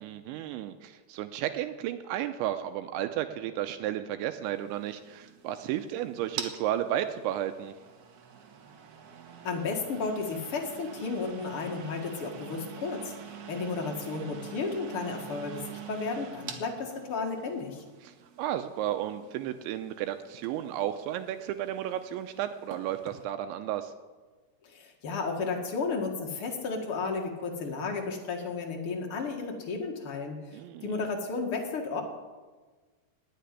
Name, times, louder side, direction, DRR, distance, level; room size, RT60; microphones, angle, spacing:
voice 1, 0.0-7.7 18.0-23.9 30.5-31.0, right 12 dB, 85° right, 8 dB, 2.9 m, -33 dB
sound 1, 4.5-23.2, right 7 dB, 60° right, 2.0 m, -46 dB
voice 2, 9.4-17.8 24.6-32.0, left 4 dB, 60° left, 1 dB, 1.4 m, -33 dB
19.5 x 6.8 x 9.7 m, 1.3 s
omnidirectional pair, 5.4 m